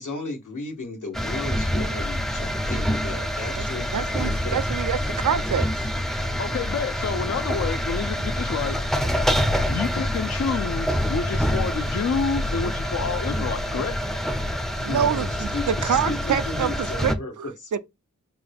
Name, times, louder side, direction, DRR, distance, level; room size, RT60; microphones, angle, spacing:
voice 1, 0.0-4.6 14.7-17.8, left 2 dB, 75° left, 1.3 m, -35 dB
sound 1, 1.1-17.2, equal, ahead, 0.5 m, -26 dB
voice 2, 3.9-5.7 14.8-17.5 17.7-17.8, right 8 dB, 70° right, 0.5 m, -26 dB
voice 3, 6.4-8.8 9.7-14.0, left 5 dB, 55° left, 0.5 m, -28 dB
5.3 x 2.3 x 3.4 m
wide cardioid pair, 65°, 31 cm